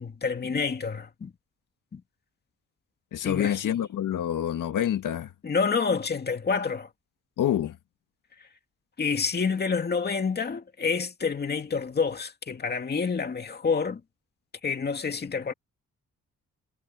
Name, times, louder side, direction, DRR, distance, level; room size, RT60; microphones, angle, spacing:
voice 1, 0.0-1.3 1.9-2.0 3.2-3.7 5.4-6.9 9.0-14.0 14.6-15.5, left 5 dB, 30° left, 2.3 m, -28 dB
voice 2, 3.1-5.3 7.4-7.8, left 10 dB, 80° left, 2.1 m, -27 dB
cardioid pair, 125°, 31 cm